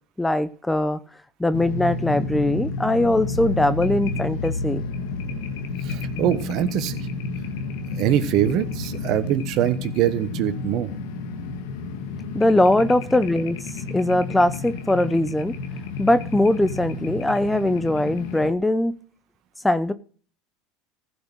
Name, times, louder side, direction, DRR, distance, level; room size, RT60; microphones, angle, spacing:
voice 1, 0.2-1.0 1.4-4.8 12.3-13.6 13.9-15.5 16.0-19.0 19.6-19.9, left 1 dB, 10° left, 13 dB, 0.7 m, -21 dB
sound 1, 1.5-18.5, left 3 dB, 75° left, 1.6 m, -31 dB
voice 2, 5.9-7.0 8.0-10.9, right 12 dB, 60° right, 12 dB, 1.2 m, -23 dB
15.5 x 6.2 x 6.4 m, 0.42 s
hypercardioid pair, 90°, 0 cm